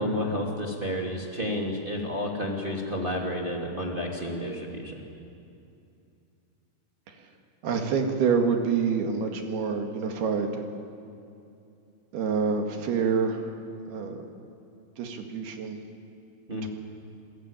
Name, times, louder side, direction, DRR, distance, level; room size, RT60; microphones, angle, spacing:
voice 1, 0.0-5.0 16.5-16.7, equal, 25° right, -1 dB, 1.1 m, -30 dB
voice 2, 7.6-10.6 12.1-13.5 13.9-14.3 15.0-15.8 16.6-16.7, right 5 dB, 60° right, 4 dB, 3.4 m, -27 dB
28.0 x 21.5 x 8.9 m, 2.6 s
omnidirectional pair, 5.8 m